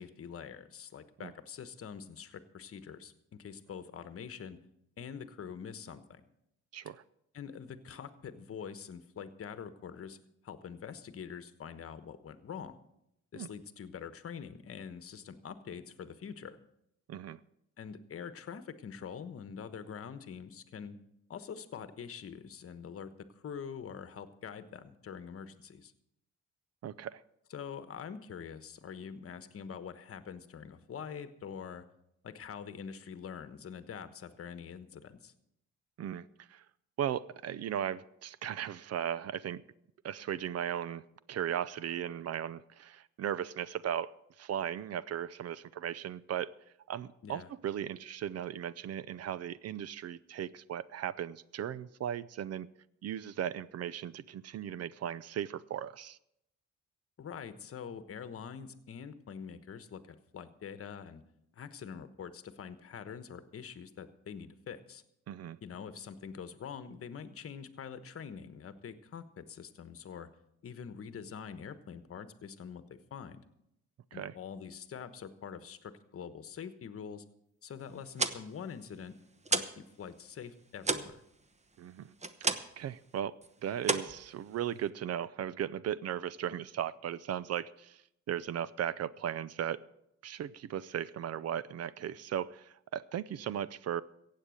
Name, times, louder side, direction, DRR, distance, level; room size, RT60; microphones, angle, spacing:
voice 1, 0.0-4.6 5.0-6.2 7.3-10.2 10.4-12.8 13.3-16.6 17.8-21.0 21.3-25.9 27.5-31.8 32.2-35.3 47.2-47.5 57.2-61.2 61.5-65.0 65.6-70.3 70.6-73.4 74.1-77.2 77.6-79.1 79.5-81.2, left 7 dB, 50° left, 11 dB, 1.2 m, -45 dB
voice 2, 6.7-7.0 13.3-13.5 17.1-17.4 26.8-27.2 36.0-36.6 37.0-39.6 40.0-44.1 44.4-46.5 46.9-52.7 53.0-56.2 65.3-65.6 74.1-74.3 81.8-82.1 82.4-83.3 83.6-89.8 90.2-94.0, right 10 dB, 55° right, 19 dB, 0.6 m, -37 dB
sound 1, 77.9-79.9 80.1-82.9 83.2-83.5 83.8-84.9, right 3 dB, 20° right, 1.0 m, -34 dB
15.5 x 8.6 x 6.4 m, 0.79 s
cardioid pair, 90°, 30 cm